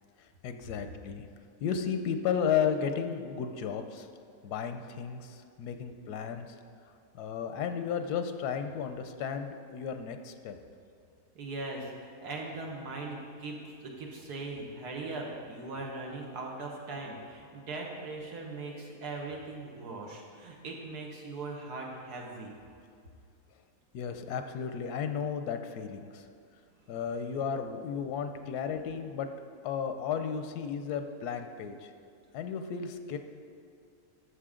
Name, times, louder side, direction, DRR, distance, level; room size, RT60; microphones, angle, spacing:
voice 1, 0.4-1.3 1.6-4.1 4.4-6.5 7.1-10.6 23.9-26.3 26.9-29.3 29.6-31.9 32.3-33.2, left 7 dB, 90° left, 7 dB, 1.2 m, -33 dB
voice 2, 11.4-22.5, right 3 dB, 90° right, -1 dB, 1.8 m, -40 dB
12.5 x 6.8 x 3.7 m, 2.4 s
omnidirectional pair, 1.6 m